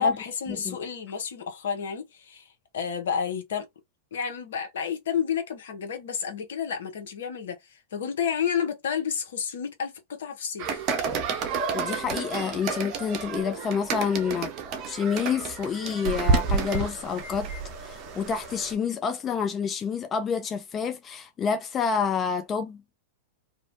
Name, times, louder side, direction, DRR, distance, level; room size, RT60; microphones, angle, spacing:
voice 1, 0.0-3.7 4.1-10.8, left 7 dB, 70° left, 0.7 m, -30 dB
sound 1, 10.6-18.7, right 4 dB, 40° right, 0.6 m, -30 dB
voice 2, 11.7-14.5 14.9-17.5 17.8-22.8, left 6 dB, 25° left, 0.3 m, -28 dB
2.5 x 2.1 x 2.5 m
figure-of-eight pair, 95°, 0 cm